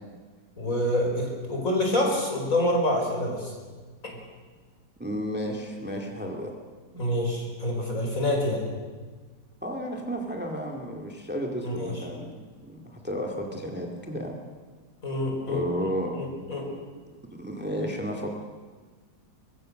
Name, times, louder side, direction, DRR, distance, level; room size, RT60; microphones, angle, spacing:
voice 1, 0.6-3.5 6.9-8.6 11.6-11.9 15.0-15.6 16.2-16.6, left 1 dB, 50° left, 0 dB, 5.4 m, -26 dB
voice 2, 5.0-6.5 9.6-14.4 15.5-16.2 17.4-18.3, equal, 5° right, 2 dB, 2.1 m, -32 dB
23.5 x 22.5 x 6.5 m, 1.4 s
omnidirectional pair, 1.8 m